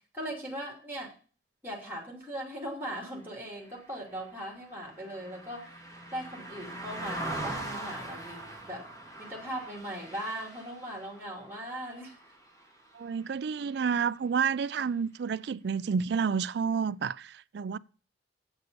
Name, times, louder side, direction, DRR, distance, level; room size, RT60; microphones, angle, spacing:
voice 1, 0.1-1.1 1.6-5.7 6.1-8.9 9.2-12.2, right 1 dB, 10° right, 2.6 m, -39 dB
Car passing by, 3.7-13.2 13.6-13.8, right 1 dB, 15° left, 2.9 m, -42 dB
voice 2, 12.9-17.8, right 6 dB, 60° right, 0.4 m, -30 dB
8.1 x 6.6 x 6.8 m
head